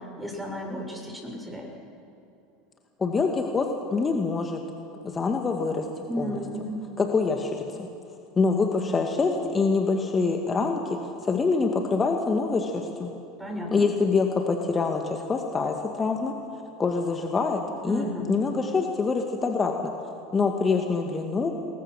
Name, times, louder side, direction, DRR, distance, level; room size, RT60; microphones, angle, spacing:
voice 1, 0.0-1.7 6.1-6.8 13.4-13.8 17.8-18.3, equal, 5° right, 0 dB, 7.5 m, -33 dB
voice 2, 3.0-4.6 5.0-6.4 7.0-7.9 8.4-13.1 13.7-16.4 16.8-19.9 20.3-21.6, left 4 dB, 20° left, 3 dB, 2.0 m, -25 dB
27.0 x 21.5 x 6.5 m, 2.8 s
figure-of-eight pair, 75°, 0 cm